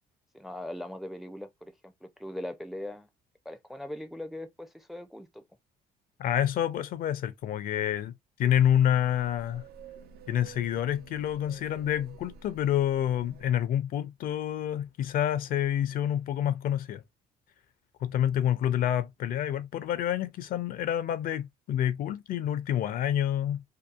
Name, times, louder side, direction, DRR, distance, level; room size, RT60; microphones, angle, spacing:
voice 1, 0.3-3.1 3.5-5.4, left 1 dB, ahead, 0.4 m, -40 dB
voice 2, 6.2-8.1 8.4-9.6 10.3-17.0 18.0-23.6, left 10 dB, 60° left, 0.4 m, -28 dB
sound 1, 8.5-13.5, right 5 dB, 70° right, 0.4 m, -51 dB
2.7 x 2.3 x 2.3 m
cardioid pair, 110°, 17 cm